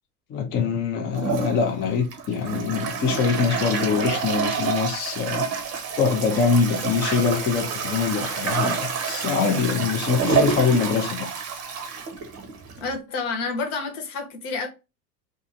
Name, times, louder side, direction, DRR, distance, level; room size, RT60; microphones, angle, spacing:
voice 1, 0.3-5.5 6.0-11.3, left 5 dB, 25° left, 0.4 m, -24 dB
Toilet flush, 1.1-12.9, right 5 dB, 30° right, 0.7 m, -28 dB
voice 2, 12.8-14.7, left 4 dB, 65° left, 1.0 m, -29 dB
2.7 x 2.4 x 2.5 m
hypercardioid pair, 90°, 48 cm